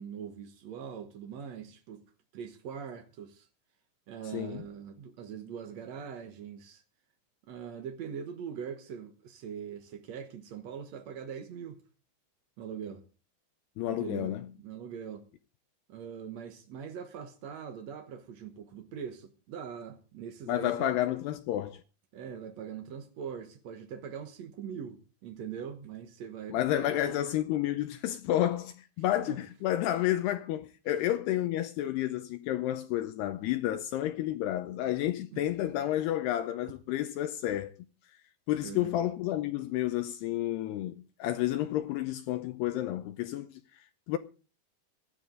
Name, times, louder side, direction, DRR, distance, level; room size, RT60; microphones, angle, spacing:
voice 1, 0.0-2.0 2.3-3.5 4.1-6.8 7.5-11.8 12.6-13.0 14.0-15.3 15.9-20.9 22.1-27.2 29.2-29.4 30.9-31.0 35.3-35.4 38.6-38.9, right 7 dB, 70° right, 1.6 m, -42 dB
voice 2, 4.3-4.6 13.8-14.5 20.5-21.8 26.5-37.7 38.5-44.2, left 13 dB, 80° left, 2.7 m, -31 dB
18.0 x 13.0 x 3.8 m
omnidirectional pair, 5.0 m